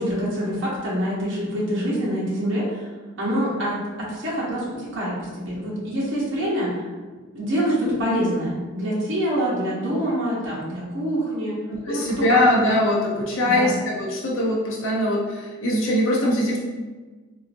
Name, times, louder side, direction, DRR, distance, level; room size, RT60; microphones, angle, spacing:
voice 1, 0.0-2.9 3.2-6.9 7.3-11.6 11.9-12.7 13.4-13.8, equal, 65° right, -7 dB, 1.0 m, -26 dB
voice 2, 11.7-16.6, left 1 dB, 70° left, -4 dB, 0.6 m, -22 dB
3.8 x 2.4 x 2.5 m, 1.3 s
head